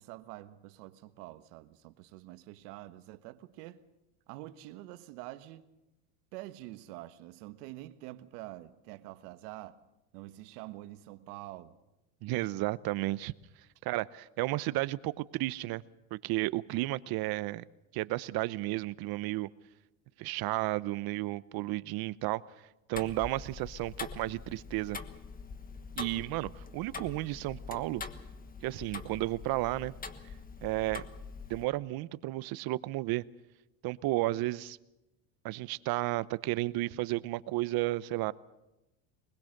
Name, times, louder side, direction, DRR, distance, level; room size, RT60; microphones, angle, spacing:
voice 1, 0.0-3.8 4.3-5.7 6.3-9.8 10.1-11.8, right 16 dB, 80° right, 1.5 m, -46 dB
voice 2, 12.2-13.3 13.8-15.8 16.1-17.6 17.9-19.5 20.2-22.4 22.9-25.0 26.0-28.0 28.6-29.9 30.6-31.0 31.5-33.2 33.8-34.8 35.4-38.3, right 18 dB, 55° right, 0.8 m, -33 dB
Tick-tock, 22.9-31.6, left 5 dB, 20° left, 1.3 m, -44 dB
23.0 x 21.0 x 6.6 m
supercardioid pair, 125°, 45 cm